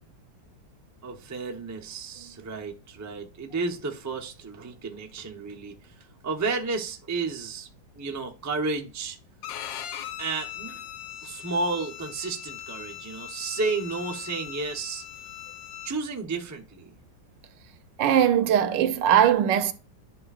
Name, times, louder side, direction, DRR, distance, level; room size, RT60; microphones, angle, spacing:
voice 1, 1.0-5.9 6.2-7.7 7.9-9.2 10.2-10.8 11.2-15.0 15.8-16.9, right 3 dB, 25° right, 0.4 m, -32 dB
Bowed string instrument, 9.4-15.9, left 10 dB, 90° left, 1.4 m, -40 dB
voice 2, 18.0-19.7, right 9 dB, 75° right, 1.4 m, -20 dB
10.5 x 5.5 x 2.4 m
omnidirectional pair, 2.0 m